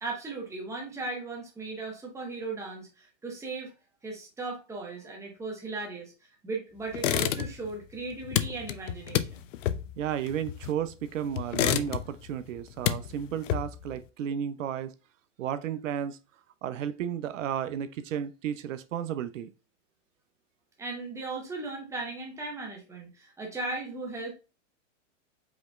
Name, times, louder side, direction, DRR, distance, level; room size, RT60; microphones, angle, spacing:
voice 1, 0.0-3.7 4.0-9.4 20.8-24.3, right 3 dB, 10° right, 1.0 m, -37 dB
sound 1, 6.9-7.7 8.0-10.9 11.4-12.3 12.6-13.9, left 11 dB, 75° left, 0.5 m, -29 dB
voice 2, 10.0-14.9 15.4-16.2 16.6-19.5, right 9 dB, 80° right, 0.6 m, -33 dB
5.1 x 3.1 x 2.3 m
hypercardioid pair, 140°, 38 cm